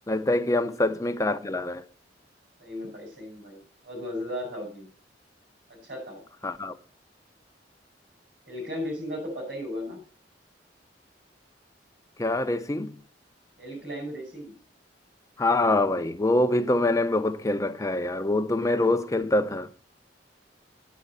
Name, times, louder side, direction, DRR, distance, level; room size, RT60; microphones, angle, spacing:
voice 1, 0.1-1.8 6.4-6.8 12.2-13.0 15.4-19.7, left 2 dB, 20° left, 0.6 m, -25 dB
voice 2, 2.6-4.9 5.7-6.2 8.5-10.0 13.6-14.5, left 1 dB, 70° right, 5.9 m, -36 dB
8.5 x 8.3 x 5.4 m
head